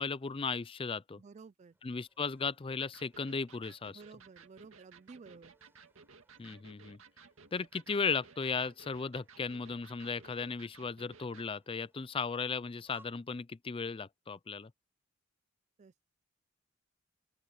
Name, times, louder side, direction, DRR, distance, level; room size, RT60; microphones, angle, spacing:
voice 1, 0.0-1.2 1.8-4.0 6.4-7.0 7.5-14.7, left 5 dB, 25° left, 0.5 m, -36 dB
voice 2, 1.1-1.8 3.9-5.5 15.8-16.0, right 4 dB, 35° right, 0.3 m, -53 dB
sound 1, 1.7-13.1, right 1 dB, 10° right, 4.0 m, -70 dB
Electric guitar, 2.8-11.5, right 5 dB, 80° right, 2.1 m, -58 dB
open air
head